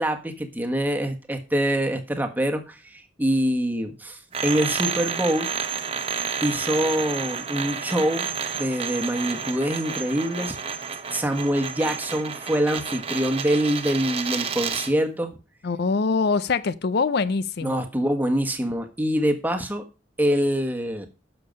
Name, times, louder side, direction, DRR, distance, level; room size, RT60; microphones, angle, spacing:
voice 1, 0.0-5.5 6.4-10.6 11.1-15.3 17.6-19.8 20.2-21.1, equal, 10° right, 1.3 m, -25 dB
sound 1, 4.3-15.0, right 6 dB, 30° right, 1.0 m, -30 dB
voice 2, 15.6-17.8, left 4 dB, 60° left, 0.5 m, -24 dB
10.5 x 6.8 x 5.2 m
head